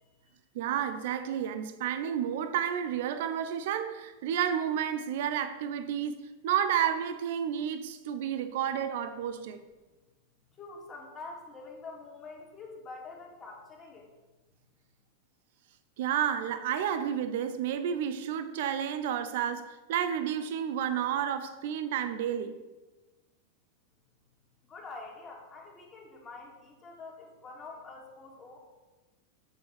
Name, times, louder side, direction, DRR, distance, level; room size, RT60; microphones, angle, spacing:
voice 1, 0.5-9.6 16.0-22.6, right 9 dB, 55° right, 0.7 m, -31 dB
voice 2, 10.6-14.1 24.6-28.6, left 3 dB, 25° left, 2.7 m, -46 dB
7.9 x 7.1 x 7.0 m
figure-of-eight pair, 90°, 0 cm